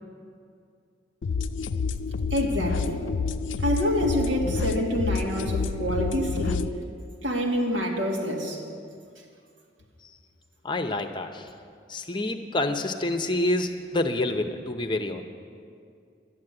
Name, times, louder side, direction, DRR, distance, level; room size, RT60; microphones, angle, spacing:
sound 1, 1.2-6.7, left 5 dB, 90° left, 0.5 m, -29 dB
voice 1, 2.3-3.1 3.6-6.7 7.2-8.6, equal, 90° right, -1 dB, 2.1 m, -27 dB
voice 2, 10.6-11.5 11.9-15.2, left 2 dB, 25° left, 6 dB, 0.7 m, -28 dB
11.5 x 11.0 x 7.9 m, 2.4 s
head